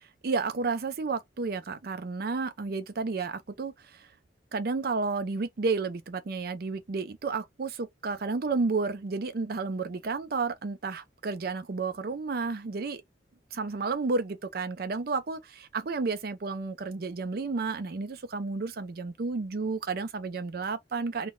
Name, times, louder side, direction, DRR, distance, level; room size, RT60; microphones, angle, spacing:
voice 1, 0.2-4.1 4.5-13.0 13.5-21.3, right 4 dB, 60° right, 0.5 m, -31 dB
2.2 x 2.1 x 3.7 m
head